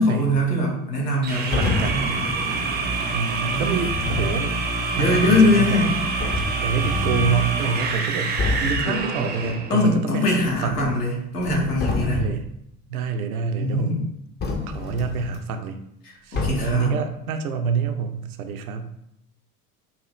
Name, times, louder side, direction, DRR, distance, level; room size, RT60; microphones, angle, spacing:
voice 1, 0.0-2.3 3.5-3.8 4.9-5.9 8.8-9.0 9.7-12.3 13.6-14.0 16.0-17.0, left 2 dB, 85° left, -2 dB, 1.2 m, -22 dB
sound 1, 1.2-9.7, right 4 dB, 20° right, 0.5 m, -26 dB
voice 2, 1.4-2.1 3.1-4.6 5.0-5.9 6.3-10.9 12.0-12.5 12.9-14.0 14.7-15.8 16.2-18.9, right 5 dB, 70° right, 7 dB, 0.6 m, -27 dB
sound 2, 1.5-2.1 3.8-4.4 5.6-5.7 6.2-7.4 7.9-8.0 8.4-8.8 10.4-11.1 11.4-12.5 14.4-15.4 16.3-16.9, left 3 dB, 25° left, 0.5 m, -28 dB
4.1 x 2.4 x 3.0 m, 0.77 s
figure-of-eight pair, 70°, 46 cm